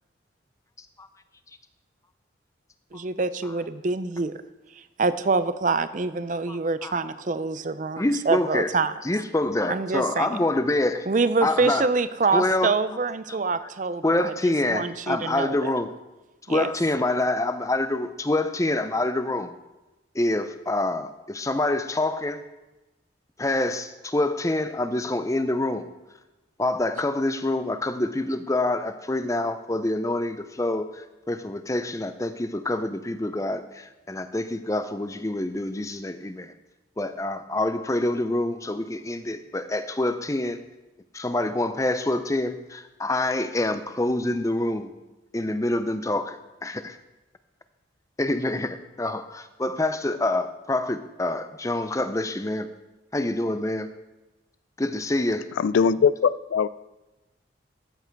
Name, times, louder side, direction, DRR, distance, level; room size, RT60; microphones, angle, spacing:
voice 1, 2.9-4.4 5.0-8.9 9.7-10.3 11.1-15.7 16.5-16.7, right 3 dB, 40° right, 13 dB, 0.5 m, -26 dB
voice 2, 6.5-7.0 8.0-8.7 9.0-11.1 11.4-11.9 12.3-13.0 13.3-13.7 14.0-15.9 16.5-19.5 20.1-22.4 23.4-25.9 26.6-36.5 37.0-40.6 41.1-45.0 45.3-47.0 48.2-52.7 53.1-53.9 54.8-55.5, left 2 dB, 15° left, 10 dB, 0.5 m, -26 dB
voice 3, 55.6-56.7, left 6 dB, 80° left, 17 dB, 0.3 m, -21 dB
13.0 x 8.3 x 4.6 m, 1.1 s
head